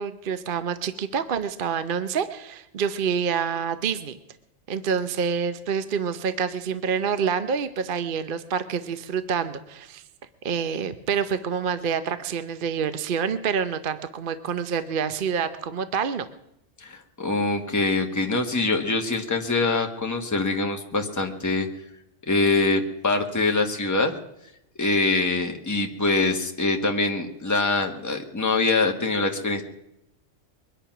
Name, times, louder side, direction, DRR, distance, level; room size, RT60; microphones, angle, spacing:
voice 1, 0.0-4.2 4.7-10.0 10.4-16.3, right 6 dB, 50° right, 11 dB, 0.9 m, -27 dB
voice 2, 16.8-21.7 22.3-24.1 24.8-29.6, left 3 dB, 15° left, 3 dB, 1.3 m, -24 dB
22.5 x 10.0 x 6.0 m, 0.84 s
omnidirectional pair, 1.3 m